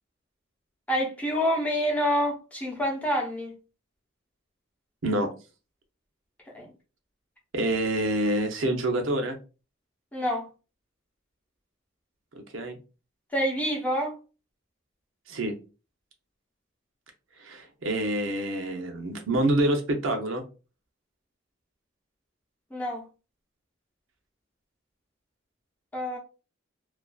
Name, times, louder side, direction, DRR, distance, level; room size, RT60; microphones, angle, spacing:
voice 1, 0.9-3.5 6.5-6.7 10.1-10.5 13.3-14.2 22.7-23.0 25.9-26.2, equal, 5° left, 0.7 m, -27 dB
voice 2, 7.5-9.4 12.3-12.8 15.3-15.5 17.4-20.4, right 1 dB, 75° right, 0.6 m, -27 dB
2.4 x 2.3 x 2.3 m
head